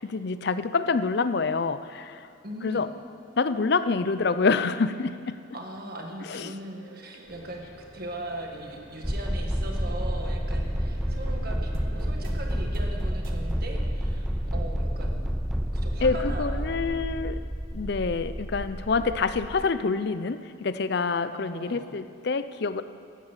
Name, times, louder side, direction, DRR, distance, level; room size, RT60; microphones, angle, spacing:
voice 1, 0.0-2.3 2.6-2.9 3.4-5.4 6.2-6.5 16.0-17.4 17.7-22.8, left 4 dB, 55° left, 13 dB, 0.5 m, -27 dB
voice 2, 2.4-2.9 5.5-15.3 15.8-17.2 21.3-21.9, right 1 dB, 45° right, 2 dB, 1.8 m, -40 dB
Troubled (loopable), 6.8-13.6, right 1 dB, 85° right, 1.4 m, -43 dB
sound 1, 7.2-14.7, equal, 70° left, 4.2 m, -52 dB
sound 2, 9.0-19.6, equal, ahead, 0.3 m, -29 dB
13.0 x 10.5 x 7.4 m, 2.3 s
head